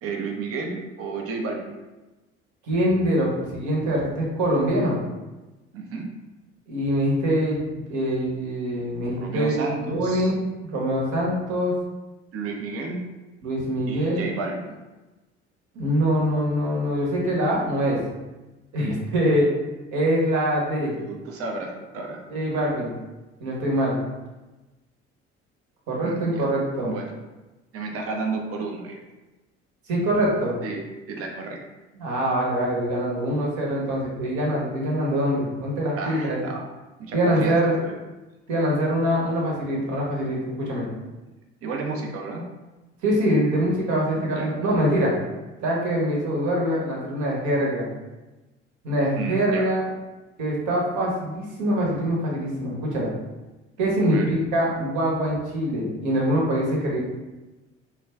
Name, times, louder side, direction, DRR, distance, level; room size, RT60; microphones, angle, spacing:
voice 1, 0.0-1.7 5.7-6.1 9.2-10.3 12.3-13.0 13.9-14.7 21.0-22.2 26.0-26.5 26.8-27.1 27.7-29.0 30.6-30.8 31.1-31.6 35.9-36.7 37.0-37.9 41.6-42.4 44.2-44.5 49.2-49.6 54.0-54.3, right 4 dB, 40° right, 1 dB, 0.6 m, -32 dB
voice 2, 2.7-5.0 6.7-10.3 10.6-11.7 13.4-14.3 15.7-18.0 18.7-19.5 19.9-20.9 22.3-22.9 23.4-24.0 25.9-26.9 29.9-30.5 32.0-36.4 37.1-37.7 38.5-40.9 43.0-45.1 45.6-47.9 48.8-49.8 50.4-53.1 53.8-57.0, equal, 60° right, -4 dB, 1.0 m, -24 dB
2.3 x 2.2 x 3.5 m, 1.1 s
figure-of-eight pair, 50°, 34 cm